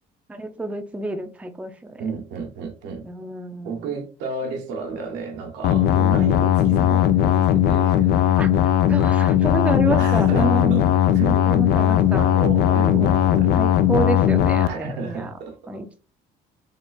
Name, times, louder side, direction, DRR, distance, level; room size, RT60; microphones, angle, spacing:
voice 1, 0.3-2.0 3.0-4.0 8.4-10.9 11.5-12.3 13.0-15.3 15.7-16.0, right 2 dB, 5° right, 0.5 m, -29 dB
voice 2, 2.0-3.1 3.6-8.1 10.0-11.6 12.1-13.7 14.6-15.6, right 4 dB, 90° right, 1.0 m, -32 dB
sound 1, 5.6-14.7, left 11 dB, 75° left, 0.4 m, -18 dB
3.5 x 2.4 x 3.9 m
cardioid pair, 110°, 17 cm